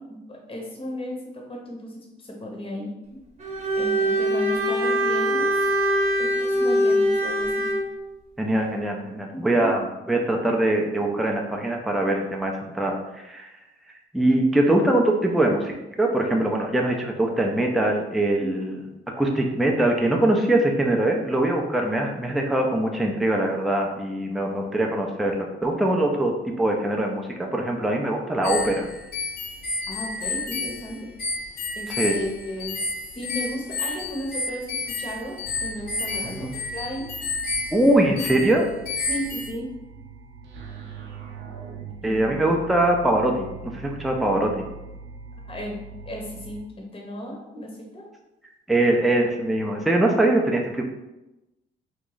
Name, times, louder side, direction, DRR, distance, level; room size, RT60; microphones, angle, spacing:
voice 1, 0.1-2.9 3.8-5.5 6.2-7.7 9.3-9.7 18.4-18.6 27.7-27.8 29.9-31.1 31.8-37.1 38.4-38.6 39.1-39.7 42.0-42.3 45.5-45.8 46.0-48.1, equal, 25° left, -1 dB, 0.8 m, -34 dB
Bowed string instrument, 3.4-7.9, equal, 35° right, 0.9 m, -22 dB
voice 2, 8.4-13.5 14.1-15.7 16.0-18.8 19.2-28.9 32.0-32.1 36.4-36.5 37.7-38.7 42.0-44.5 48.7-50.8, right 1 dB, ahead, 0 dB, 0.4 m, -22 dB
sound 1, 28.4-39.5, left 3 dB, 55° left, 0.6 m, -31 dB
sound 2, 35.4-46.6, right 4 dB, 75° right, 0.6 m, -42 dB
3.0 x 2.4 x 3.8 m, 0.97 s
cardioid pair, 90°, 20 cm